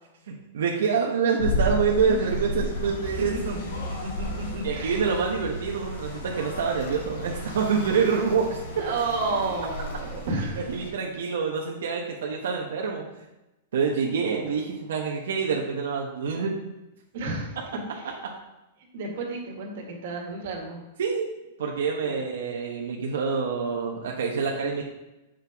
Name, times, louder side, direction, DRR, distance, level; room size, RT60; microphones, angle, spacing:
voice 1, 0.3-3.6 4.6-8.6 10.6-13.0 13.7-16.5 21.0-24.8, right 5 dB, 80° right, -1 dB, 1.2 m, -26 dB
sound 1, 1.4-10.9, left 1 dB, 70° left, 2.3 m, -33 dB
voice 2, 2.0-2.3 3.5-3.6 4.0-5.0 8.8-10.6 17.1-18.1 18.9-20.8 22.0-22.1, right 3 dB, 50° right, -1 dB, 2.0 m, -31 dB
8.0 x 6.4 x 3.6 m, 0.98 s
supercardioid pair, 175°, 0 cm